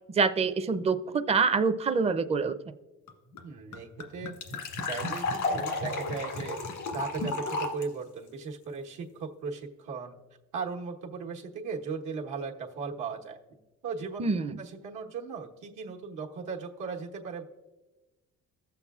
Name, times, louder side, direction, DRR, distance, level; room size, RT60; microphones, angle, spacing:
voice 1, 0.1-2.6 14.2-14.6, right 5 dB, 20° right, 10 dB, 0.4 m, -26 dB
sound 1, 3.1-3.2 3.4-3.5 3.7-7.8, left 3 dB, 90° left, 1.6 m, -32 dB
voice 2, 3.4-4.3 4.8-6.6 6.9-10.2 10.5-13.4 13.8-14.2 14.6-17.4, right 5 dB, 85° right, -1 dB, 1.2 m, -37 dB
15.5 x 7.0 x 2.4 m, 1.1 s
cardioid pair, 90°, 30 cm